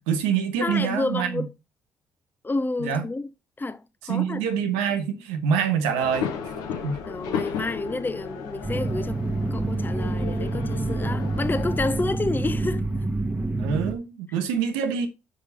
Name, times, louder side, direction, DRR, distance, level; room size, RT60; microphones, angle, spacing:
voice 1, 0.0-1.5 2.8-3.0 4.1-6.3 6.8-7.0 13.5-15.1, right 7 dB, 85° right, 0.9 m, -25 dB
voice 2, 0.6-1.5 2.4-3.3 3.6-4.4 7.1-9.2 9.5-12.8, left 2 dB, 20° left, 0.6 m, -29 dB
sound 1, 6.0-12.1, left 7 dB, 80° left, 1.1 m, -34 dB
sound 2, 8.6-13.9, right 2 dB, 15° right, 1.2 m, -27 dB
5.4 x 5.0 x 5.5 m
hypercardioid pair, 45°, 10 cm